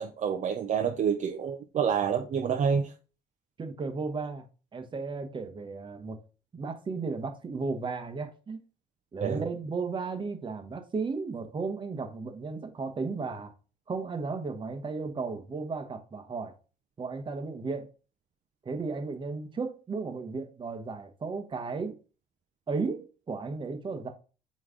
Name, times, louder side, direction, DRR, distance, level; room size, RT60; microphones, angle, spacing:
voice 1, 0.0-2.9 9.2-9.4, right 7 dB, 45° right, 0.7 m, -28 dB
voice 2, 3.6-4.5 4.7-6.2 6.5-8.6 9.1-13.5 13.9-16.5 17.0-17.9 18.6-22.0 22.7-24.1, right 4 dB, 30° right, 1.1 m, -34 dB
7.8 x 3.2 x 3.8 m
cardioid pair, 110°, 17 cm